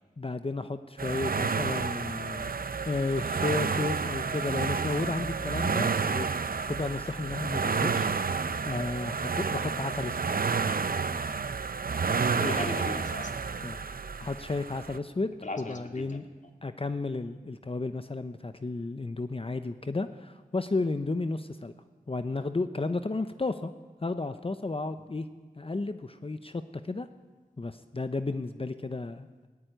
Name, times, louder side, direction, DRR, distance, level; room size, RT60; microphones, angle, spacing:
voice 1, 0.2-2.5 2.8-10.3 13.6-13.8 14.2-16.2 16.6-21.7 22.1-23.7 24.0-25.3 25.6-27.1 27.6-29.3, left 3 dB, 35° left, 10 dB, 0.8 m, -33 dB
sound 1, 1.0-15.0, right 5 dB, 65° right, 0.8 m, -30 dB
voice 2, 12.1-13.4 15.4-16.2, left 2 dB, 50° left, 4 dB, 2.5 m, -37 dB
18.5 x 16.0 x 9.2 m, 1.3 s
wide cardioid pair, 65°, 16 cm